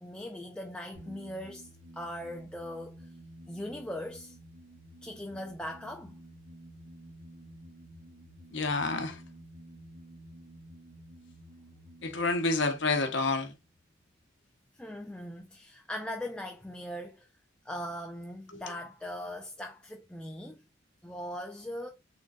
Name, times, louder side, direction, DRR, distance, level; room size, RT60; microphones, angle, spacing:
voice 1, 0.0-3.1 3.5-4.4 5.0-6.1 14.7-17.3 17.6-20.6 21.0-21.9, left 1 dB, 5° left, 0.5 m, -40 dB
sound 1, 1.0-14.2, right 1 dB, 85° right, 1.7 m, -52 dB
voice 2, 8.5-9.2 12.0-13.5 18.5-18.6, left 3 dB, 65° left, 0.9 m, -29 dB
3.9 x 3.7 x 2.4 m
head